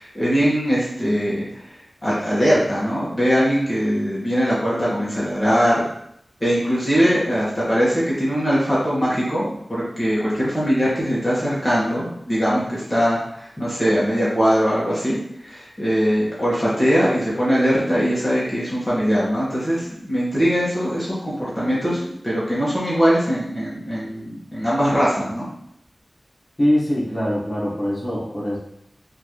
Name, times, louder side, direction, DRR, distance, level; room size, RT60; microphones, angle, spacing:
voice 1, 0.0-1.6 2.0-5.8 6.4-15.2 15.4-25.4, equal, 20° left, -9 dB, 1.5 m, -21 dB
voice 2, 26.6-28.6, equal, 45° left, -9 dB, 1.5 m, -22 dB
4.3 x 2.7 x 3.1 m, 0.74 s
wide cardioid pair, 80°, 0 cm